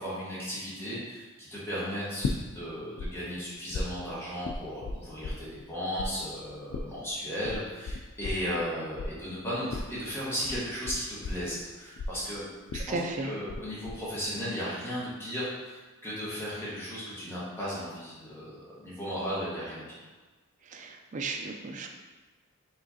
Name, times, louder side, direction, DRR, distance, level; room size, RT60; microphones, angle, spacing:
voice 1, 0.0-12.4 12.7-20.0, equal, 10° left, -9 dB, 1.3 m, -35 dB
sound 1, 2.2-3.1 3.3-5.7 6.0-13.6 13.9-14.4, left 3 dB, 65° left, 0.3 m, -35 dB
voice 2, 12.7-13.3 20.6-21.9, right 3 dB, 35° right, 3 dB, 0.4 m, -35 dB
4.8 x 3.2 x 2.7 m, 1.3 s
head